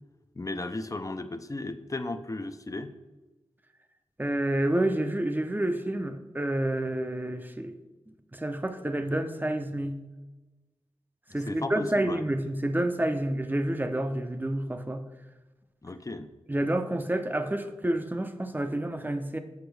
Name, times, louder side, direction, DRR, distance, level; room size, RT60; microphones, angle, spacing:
voice 1, 0.4-2.9 11.5-12.2 15.8-16.3, left 2 dB, 30° left, 10 dB, 0.5 m, -35 dB
voice 2, 4.2-7.7 8.3-10.0 11.3-15.0 16.5-19.4, right 1 dB, 15° right, 7 dB, 0.7 m, -29 dB
8.1 x 5.9 x 3.4 m, 1.1 s
wide cardioid pair, 55°, 11 cm